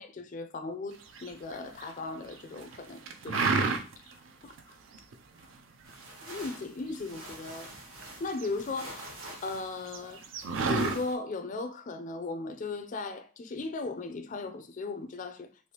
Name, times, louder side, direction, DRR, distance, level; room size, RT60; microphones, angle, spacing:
voice 1, 0.0-3.6 4.0-4.5 5.4-5.5 6.2-7.7 8.2-10.2 10.7-15.5, left 3 dB, 40° left, 0.3 m, -37 dB
sound 1, 1.1-1.9 2.3-2.8 3.1-4.1 4.5-4.6 4.9-5.4 5.9-7.7 8.0-9.2 9.5-9.6 9.9-11.0, right 4 dB, 70° right, 0.4 m, -30 dB
sound 2, 5.8-11.2, right 1 dB, 85° right, 1.0 m, -47 dB
3.3 x 2.6 x 2.8 m
head